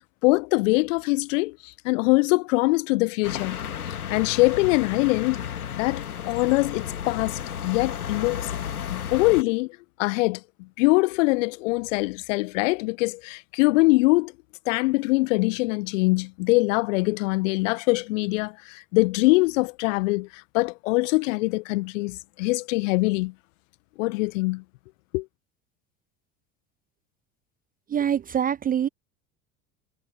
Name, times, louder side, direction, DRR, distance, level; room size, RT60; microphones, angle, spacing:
voice 1, 0.2-3.6 4.1-5.4 5.7-8.5 8.9-14.3 14.6-23.3 24.0-24.6 25.1-25.3, left 24 dB, 55° left, 1.4 m, -23 dB
sound 1, 3.2-9.4, left 9 dB, 75° left, 2.2 m, -33 dB
voice 2, 27.9-28.9, right 9 dB, 20° right, 0.6 m, -24 dB
figure-of-eight pair, 70°, 44 cm